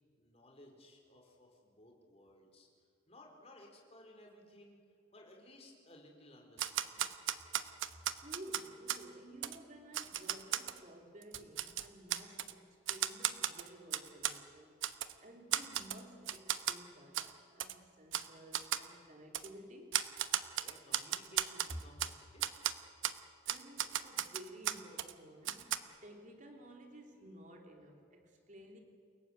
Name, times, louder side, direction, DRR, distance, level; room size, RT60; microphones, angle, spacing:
voice 1, 0.1-2.7 3.1-4.8 5.1-7.2 20.5-22.5, left 1 dB, 30° left, 4.5 m, -58 dB
Typewriter, 6.6-9.0 9.4-9.6 9.9-10.8 11.2-12.5 12.9-14.4 14.8-15.1 15.5-16.0 16.3-16.8 17.1-17.3 17.6-17.7 18.1-18.3 18.5-18.9 19.3-19.5 19.9-22.1 22.4-22.7 23.0-23.2 23.5-25.1 25.4-25.8, right 11 dB, 65° right, 1.0 m, -35 dB
voice 2, 8.1-20.0 23.4-28.8, right 1 dB, 35° right, 3.4 m, -54 dB
29.5 x 18.0 x 8.2 m
head